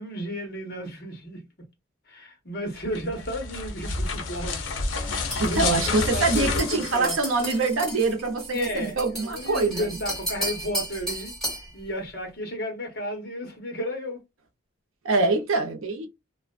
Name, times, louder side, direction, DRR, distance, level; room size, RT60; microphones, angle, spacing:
voice 1, 0.0-1.5 2.1-4.6 5.1-7.1 8.5-11.4 11.7-14.2, equal, 50° left, 1.0 m, -33 dB
sound 1, 2.8-7.8, left 3 dB, 80° left, 0.6 m, -30 dB
sound 2, 5.3-11.7, right 1 dB, 5° left, 1.4 m, -34 dB
voice 2, 5.5-10.0 15.0-16.1, right 3 dB, 85° right, 0.6 m, -24 dB
2.4 x 2.2 x 2.4 m
head